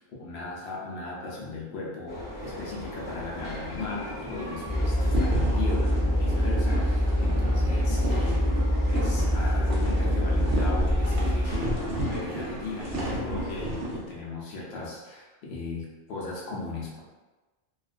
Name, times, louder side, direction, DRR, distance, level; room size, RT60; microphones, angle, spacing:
voice 1, 0.0-8.5 8.9-17.0, left 3 dB, 60° left, -4 dB, 0.8 m, -37 dB
sound 1, 2.1-13.8, left 1 dB, 30° left, 0.8 m, -38 dB
sound 2, 4.6-11.5, equal, 5° right, 0.8 m, -25 dB
sound 3, 5.1-14.0, equal, 55° right, 0.6 m, -32 dB
2.4 x 2.3 x 2.4 m, 1.2 s
omnidirectional pair, 1.3 m